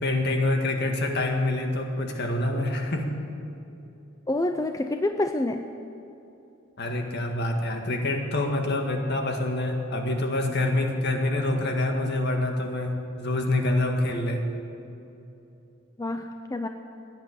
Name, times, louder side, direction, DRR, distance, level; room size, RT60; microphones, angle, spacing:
voice 1, 0.0-3.2 6.8-14.5, left 2 dB, 55° left, 3 dB, 1.8 m, -26 dB
Keyboard (musical), 1.1-4.0, left 5 dB, 60° right, 1.7 m, -47 dB
voice 2, 4.3-5.6 16.0-16.7, left 2 dB, 15° left, 6 dB, 0.5 m, -27 dB
16.5 x 9.8 x 8.2 m, 2.8 s
head